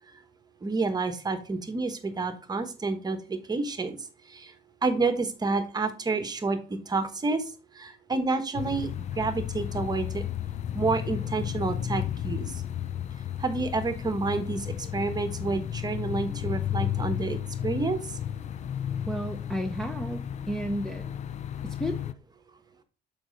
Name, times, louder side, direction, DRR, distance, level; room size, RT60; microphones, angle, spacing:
voice 1, 0.6-4.0 4.3-4.5 4.8-6.6 6.9-7.4 7.7-10.2 10.7-12.6 13.4-18.0, right 3 dB, 25° right, 1.2 m, -29 dB
sound 1, 8.6-22.1, left 10 dB, 45° left, 0.5 m, -33 dB
voice 2, 19.1-21.1 21.6-22.1, equal, 5° left, 0.8 m, -33 dB
7.0 x 5.0 x 3.9 m
cardioid pair, 110°, 17 cm